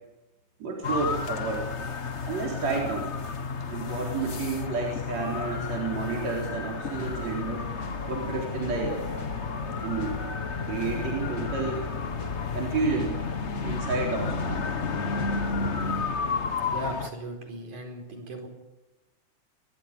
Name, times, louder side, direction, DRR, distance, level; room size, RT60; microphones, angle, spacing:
voice 1, 0.6-1.7 2.2-3.1 3.7-7.7 8.1-9.0 9.8-10.2 10.7-11.9 12.5-13.2 13.6-14.6, right 4 dB, 65° right, -2 dB, 5.2 m, -30 dB
sound 1, 0.8-17.1, left 5 dB, 65° left, 0.6 m, -32 dB
sound 2, 5.9-13.4, right 5 dB, 40° right, 3.6 m, -46 dB
sound 3, 7.0-15.7, left 4 dB, 40° left, 5.4 m, -41 dB
voice 2, 16.7-18.5, equal, 85° right, 3 dB, 6.2 m, -37 dB
27.0 x 23.0 x 5.3 m, 1.1 s
omnidirectional pair, 3.4 m